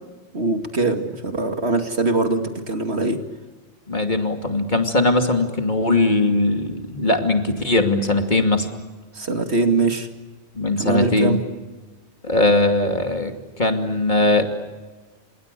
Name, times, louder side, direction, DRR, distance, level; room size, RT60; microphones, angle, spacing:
voice 1, 0.3-3.2 9.1-10.1 10.8-11.4, right 3 dB, 65° right, 6 dB, 2.7 m, -22 dB
voice 2, 3.9-8.7 10.5-11.4 12.2-14.4, left 2 dB, 40° left, 5 dB, 2.8 m, -20 dB
29.0 x 28.0 x 6.9 m, 1.3 s
omnidirectional pair, 1.2 m